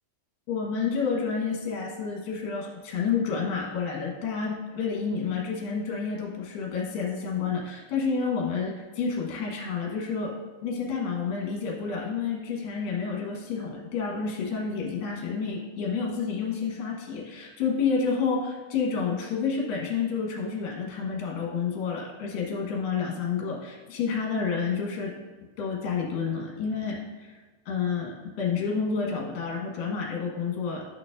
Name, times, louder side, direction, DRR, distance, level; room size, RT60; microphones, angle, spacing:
voice 1, 0.5-10.3 10.6-25.1 25.6-27.4 27.7-30.8, left 5 dB, 75° left, -2 dB, 2.8 m, -29 dB
11.0 x 4.7 x 2.5 m, 1.3 s
omnidirectional pair, 4.4 m